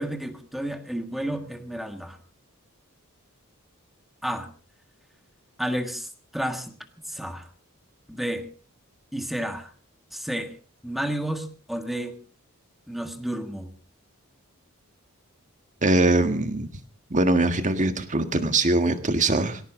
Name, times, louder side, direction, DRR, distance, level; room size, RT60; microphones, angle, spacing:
voice 1, 0.0-2.2 4.2-4.5 5.6-6.7 7.1-7.5 8.1-8.5 9.1-9.7 10.1-10.6 10.8-12.2 12.9-13.7, right 1 dB, ahead, 7 dB, 1.6 m, -31 dB
voice 2, 15.8-16.7 17.1-19.6, right 2 dB, 35° right, 8 dB, 1.7 m, -22 dB
19.0 x 17.5 x 3.8 m, 0.39 s
head